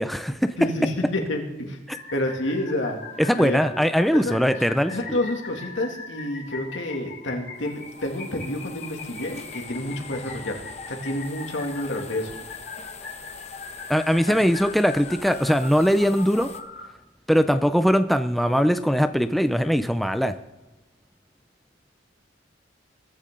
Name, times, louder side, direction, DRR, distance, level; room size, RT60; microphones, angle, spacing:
voice 1, 0.0-0.5 1.9-2.0 3.3-5.2 13.9-16.5 17.3-20.3, equal, ahead, 9 dB, 0.4 m, -21 dB
voice 2, 0.6-1.8 2.1-3.0 3.4-3.6 4.1-4.4 4.9-10.6 10.9-12.3, left 1 dB, 80° left, 2 dB, 2.5 m, -29 dB
sound 1, 1.9-16.8, left 4 dB, 55° left, 3.1 m, -41 dB
sound 2, 7.6-16.6, left 5 dB, 35° left, 0.9 m, -43 dB
22.0 x 10.5 x 3.8 m, 1.1 s
head